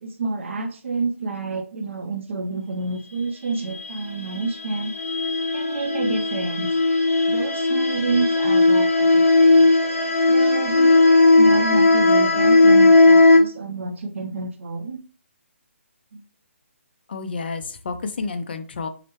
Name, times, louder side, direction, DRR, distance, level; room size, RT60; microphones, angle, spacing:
voice 1, 0.0-4.9 5.5-6.7 7.3-9.7 10.3-15.0 16.1-16.2, right 3 dB, 60° right, 3 dB, 0.6 m, -28 dB
sound 1, 4.4-13.4, left 2 dB, 90° left, 0.8 m, -16 dB
voice 2, 17.1-18.9, left 4 dB, 45° left, 8 dB, 0.5 m, -30 dB
4.8 x 2.1 x 2.9 m, 0.39 s
hypercardioid pair, 170°, 7 cm